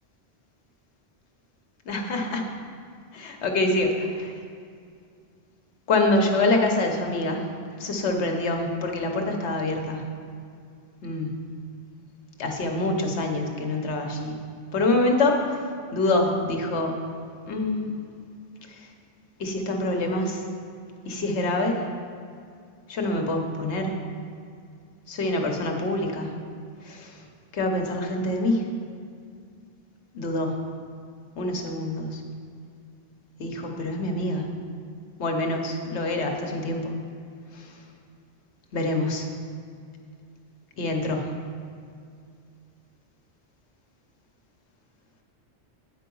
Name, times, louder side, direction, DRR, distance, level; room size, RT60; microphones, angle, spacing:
voice 1, 1.9-2.4 3.1-4.3 5.9-7.5 7.8-10.1 11.0-11.4 12.4-14.4 14.7-15.6 15.9-17.0 17.5-18.0 18.7-18.9 19.4-20.4 21.0-21.8 22.9-24.0 25.1-26.3 26.8-27.2 27.5-28.6 30.1-30.5 31.4-32.2 33.4-34.5 35.2-36.9 37.5-37.7 38.7-39.3 40.8-41.3, left 2 dB, 85° left, 3 dB, 1.2 m, -26 dB
8.9 x 4.6 x 5.3 m, 2.3 s
omnidirectional pair, 1.1 m